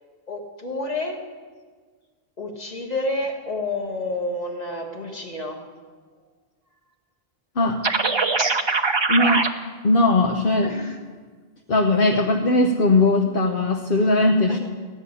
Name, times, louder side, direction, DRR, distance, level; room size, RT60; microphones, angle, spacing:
voice 1, 0.3-1.2 2.4-5.6 10.6-11.0 14.5-14.6, left 2 dB, 40° left, 2 dB, 1.6 m, -29 dB
sound 1, 7.8-9.5, right 4 dB, 30° right, 0.7 m, -21 dB
voice 2, 9.1-9.5 9.8-10.7 11.7-14.6, left 2 dB, 60° left, 3 dB, 1.0 m, -19 dB
15.0 x 6.3 x 9.7 m, 1.5 s
omnidirectional pair, 1.0 m